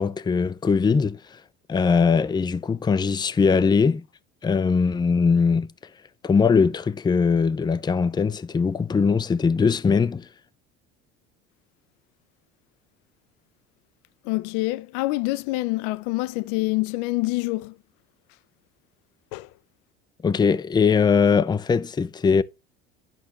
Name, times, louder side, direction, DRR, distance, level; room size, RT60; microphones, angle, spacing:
voice 1, 0.0-1.4 1.7-4.0 4.4-5.7 6.2-10.3 20.2-22.4, left 5 dB, 15° left, 0.5 m, -21 dB
voice 2, 14.2-17.8 19.3-19.5, left 21 dB, 65° left, 0.6 m, -26 dB
11.5 x 5.7 x 3.0 m
hypercardioid pair, 70°, 33 cm